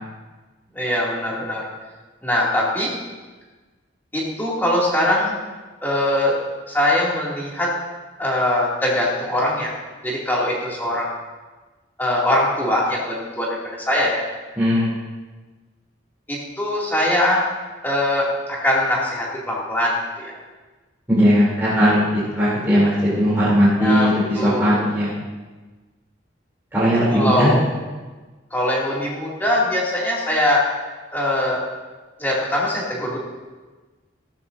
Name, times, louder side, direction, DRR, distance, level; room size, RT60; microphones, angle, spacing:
voice 1, 0.7-1.6 2.2-2.9 4.1-5.3 5.8-6.4 6.7-7.7 8.2-9.7 10.0-11.1 12.0-14.2 16.3-17.4 17.8-20.3 23.7-24.8 27.1-27.6 28.5-30.6 31.1-31.6 32.2-33.2, left 1 dB, 10° left, -5 dB, 2.4 m, -22 dB
voice 2, 14.6-14.9 21.1-22.0 22.3-25.1 26.7-27.5, equal, 10° right, -10 dB, 3.0 m, -18 dB
13.5 x 13.5 x 2.6 m, 1.3 s
head